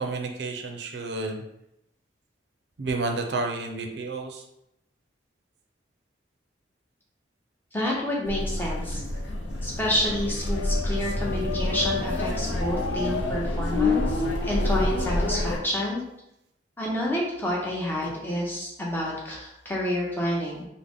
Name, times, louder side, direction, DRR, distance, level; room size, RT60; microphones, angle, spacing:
voice 1, 0.0-1.4 2.8-4.4, right 3 dB, 60° right, 3 dB, 0.5 m, -30 dB
voice 2, 7.7-9.0 9.6-16.0 16.8-20.7, equal, 10° left, -4 dB, 0.7 m, -29 dB
sound 1, 8.2-15.6, left 2 dB, 70° left, 0.5 m, -27 dB
3.7 x 2.1 x 3.4 m, 0.83 s
head